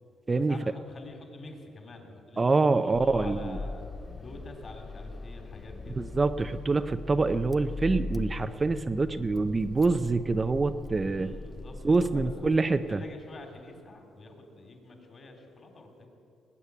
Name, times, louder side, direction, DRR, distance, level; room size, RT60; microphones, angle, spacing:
voice 1, 0.3-2.5 2.7-3.8 4.2-6.1 11.0-11.8 12.1-16.1, left 2 dB, 40° left, 3 dB, 3.3 m, -46 dB
voice 2, 2.4-3.6 6.0-11.3 11.8-13.0, right 3 dB, 25° right, 9 dB, 0.6 m, -26 dB
Car / Engine starting, 2.9-13.0, left 3 dB, 25° left, 0.5 m, -40 dB
20.0 x 8.6 x 8.3 m, 2.5 s
cardioid pair, 90°, 0 cm